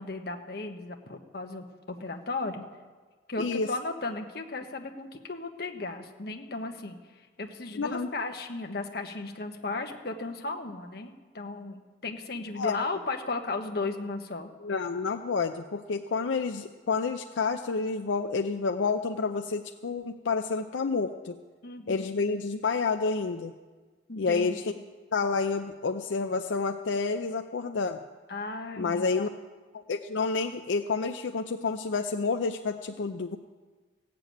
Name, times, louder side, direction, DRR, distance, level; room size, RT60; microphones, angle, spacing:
voice 1, 0.0-2.7 3.3-14.5 21.6-22.1 24.1-24.6 28.3-29.3, left 3 dB, 55° left, 5 dB, 1.2 m, -35 dB
voice 2, 3.4-3.7 7.8-8.1 12.6-12.8 14.6-21.3 21.9-23.5 24.2-24.7 25.1-28.0 28.8-29.3 29.7-33.4, left 4 dB, 85° left, 6 dB, 0.5 m, -29 dB
16.0 x 6.9 x 9.1 m, 1.4 s
head